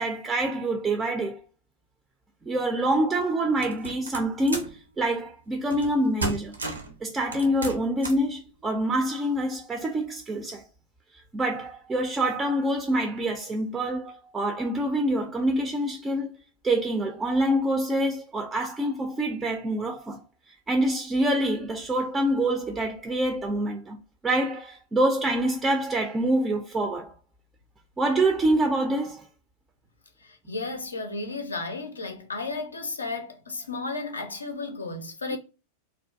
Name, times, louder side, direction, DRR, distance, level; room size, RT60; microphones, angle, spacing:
voice 1, 0.0-1.4 2.4-6.5 7.0-10.6 11.3-16.3 16.6-20.2 20.7-24.0 24.2-27.1 28.0-29.2, right 1 dB, 15° right, 0.3 m, -26 dB
sound 1, 3.6-4.8 5.7-5.9 6.2-6.9 7.3-8.3, right 2 dB, 75° right, 0.5 m, -33 dB
voice 2, 30.2-35.4, left 3 dB, 75° left, 0.5 m, -33 dB
2.4 x 2.1 x 2.5 m
figure-of-eight pair, 90°, 0 cm